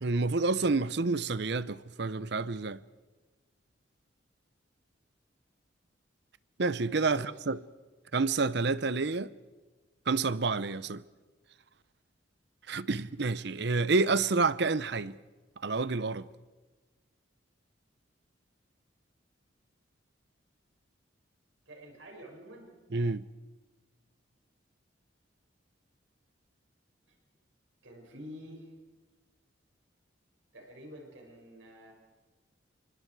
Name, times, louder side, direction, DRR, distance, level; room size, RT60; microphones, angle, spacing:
voice 1, 0.0-2.8 6.6-7.6 8.1-9.3 10.1-11.0 12.7-15.1 15.6-16.3 22.9-23.2, right 3 dB, 60° right, 0.7 m, -29 dB
voice 2, 21.7-22.8 27.1-27.2 27.8-28.7 30.5-31.9, equal, 90° right, 6.4 m, -48 dB
28.5 x 24.5 x 4.8 m
head